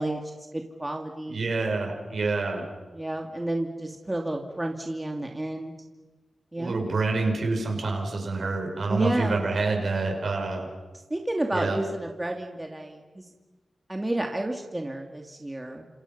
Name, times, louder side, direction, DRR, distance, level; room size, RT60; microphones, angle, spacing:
voice 1, 0.0-1.4 2.9-5.7 6.5-6.8 8.9-9.4 11.1-13.2 13.9-15.9, right 1 dB, 20° right, 2 dB, 2.5 m, -31 dB
voice 2, 1.3-2.6 6.6-10.7 11.5-11.8, right 3 dB, 70° right, 2 dB, 6.5 m, -27 dB
29.5 x 27.5 x 5.7 m, 1.2 s
cardioid pair, 65°, 0 cm